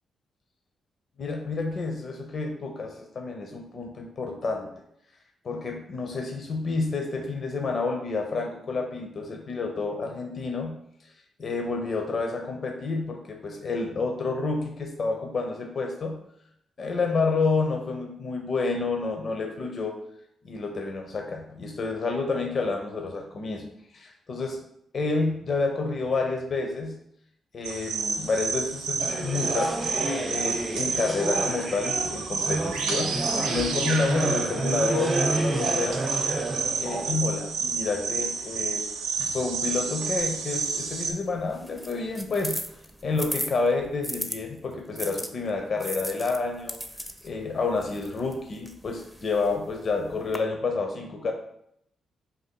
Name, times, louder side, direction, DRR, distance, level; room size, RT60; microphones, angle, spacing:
voice 1, 1.2-4.7 5.4-10.8 11.4-16.2 16.8-20.0 20.4-23.7 23.9-24.6 24.9-27.0 27.5-29.8 30.3-36.0 36.8-38.8 39.2-42.6 43.0-46.8 47.2-51.3, left 3 dB, 55° left, 3 dB, 0.5 m, -29 dB
sound 1, 27.6-41.1, right 5 dB, 80° right, 0.4 m, -30 dB
sound 2, 29.0-37.1, right 2 dB, 35° right, 0.8 m, -29 dB
sound 3, 40.2-44.4 45.0-50.4, equal, ahead, 0.4 m, -38 dB
2.6 x 2.5 x 4.1 m, 0.75 s
hypercardioid pair, 40°, 0 cm